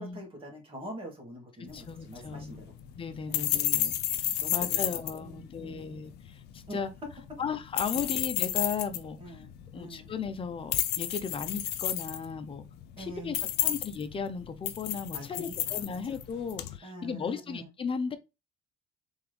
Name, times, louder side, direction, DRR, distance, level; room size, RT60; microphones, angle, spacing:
voice 1, 0.0-2.8 3.3-3.6 4.4-5.9 6.7-6.8 7.9-8.2 9.2-10.1 13.0-13.8 15.1-16.2 16.8-17.6, right 1 dB, 30° right, 2.0 m, -45 dB
voice 2, 1.6-2.7 3.0-3.9 4.2-6.9 7.4-9.4 9.7-12.6 13.0-13.4 13.6-18.2, left 6 dB, 30° left, 0.7 m, -36 dB
sound 1, 1.7-16.8, left 13 dB, 80° left, 0.6 m, -33 dB
3.7 x 3.5 x 3.3 m
cardioid pair, 110°, 17 cm